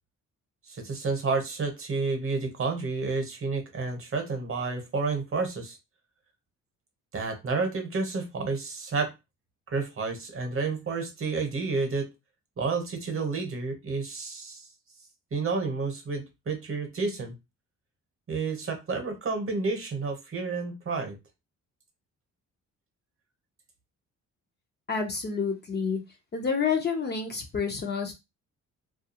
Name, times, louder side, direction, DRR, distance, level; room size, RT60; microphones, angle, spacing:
voice 1, 0.7-5.8 7.1-9.1 9.7-12.1 12.6-14.7 15.3-17.3 18.3-21.2, right 4 dB, 40° right, 4 dB, 0.9 m, -30 dB
voice 2, 24.9-26.0 26.3-28.1, left 5 dB, 30° left, 3 dB, 0.6 m, -28 dB
2.4 x 2.3 x 2.8 m, 0.23 s
cardioid pair, 100°, 32 cm